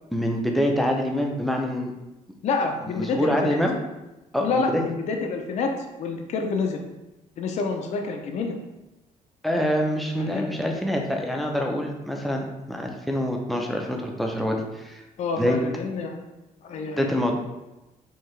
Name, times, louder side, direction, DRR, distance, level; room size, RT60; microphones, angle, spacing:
voice 1, 0.1-1.9 2.9-3.7 4.3-4.8 9.4-15.0 15.4-15.6 17.0-17.3, equal, ahead, 1 dB, 0.5 m, -25 dB
voice 2, 2.4-3.6 4.4-5.7 6.0-6.8 7.4-8.5 10.2-10.5 15.2-16.2 16.6-17.1, left 4 dB, 50° left, 3 dB, 0.5 m, -27 dB
4.5 x 2.8 x 3.1 m, 0.99 s
cardioid pair, 140°, 15 cm